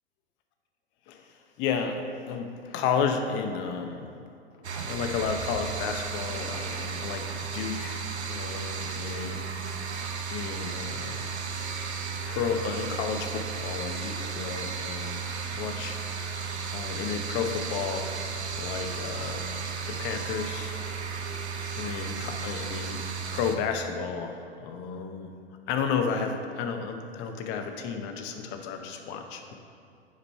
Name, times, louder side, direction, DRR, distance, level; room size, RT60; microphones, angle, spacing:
voice 1, 1.1-4.1 4.8-7.3 7.5-8.0 8.3-9.4 10.3-11.3 12.3-15.3 15.5-16.0 16.7-18.1 18.5-19.5 19.9-20.7 21.8-23.0 23.3-25.3 25.7-29.6, left 6 dB, 35° left, 5 dB, 0.7 m, -32 dB
sound 1, 4.6-23.6, right 5 dB, 85° right, 0.7 m, -34 dB
7.3 x 5.2 x 4.4 m, 2.5 s
figure-of-eight pair, 100°, 32 cm